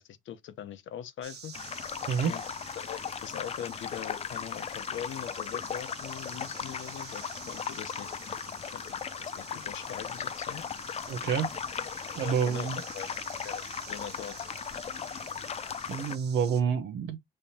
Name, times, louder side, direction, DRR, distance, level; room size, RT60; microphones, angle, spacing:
voice 1, 0.0-1.5 2.3-2.4 2.8-8.1 8.7-8.8 9.2-10.7 11.8-11.9 12.2-13.1 13.4-14.4, left 10 dB, 75° left, 0.8 m, -42 dB
sound 1, 1.2-16.6, right 7 dB, 60° right, 1.2 m, -48 dB
sound 2, 1.5-16.2, left 7 dB, 30° left, 0.3 m, -37 dB
voice 2, 11.1-11.5 12.2-12.8 15.9-17.2, right 7 dB, 75° right, 0.8 m, -28 dB
5.6 x 3.2 x 2.8 m
cardioid pair, 90°, 20 cm